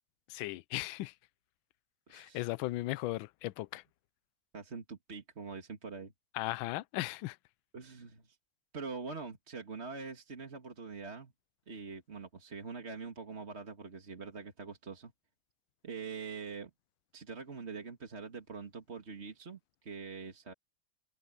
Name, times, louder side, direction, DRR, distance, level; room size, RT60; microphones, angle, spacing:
voice 1, 0.3-1.1 2.1-3.8 6.3-7.4, left 18 dB, 75° left, 1.3 m, -37 dB
voice 2, 2.1-2.5 4.5-6.1 7.7-8.4 8.7-11.3 11.7-15.1 15.8-16.7 17.1-20.5, right 4 dB, 35° right, 2.1 m, -44 dB
open air
omnidirectional pair, 2.2 m